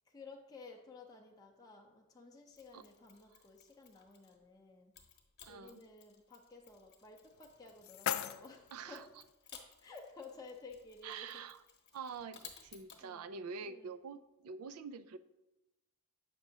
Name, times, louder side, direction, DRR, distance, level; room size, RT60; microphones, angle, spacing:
voice 1, 0.1-4.9 5.5-9.0 9.5-11.5 13.0-13.3 13.6-13.9, left 3 dB, 20° left, -1 dB, 0.6 m, -54 dB
Mechanisms, 2.5-4.4 4.9-13.0, left 7 dB, 50° left, 1.0 m, -59 dB
voice 2, 5.4-5.8 8.7-9.0 11.0-11.6 11.9-15.2, right 5 dB, 80° right, 12 dB, 0.4 m, -46 dB
sound 1, 7.3-9.3, left 10 dB, 65° left, 0.3 m, -41 dB
7.7 x 6.0 x 2.7 m, 0.97 s
head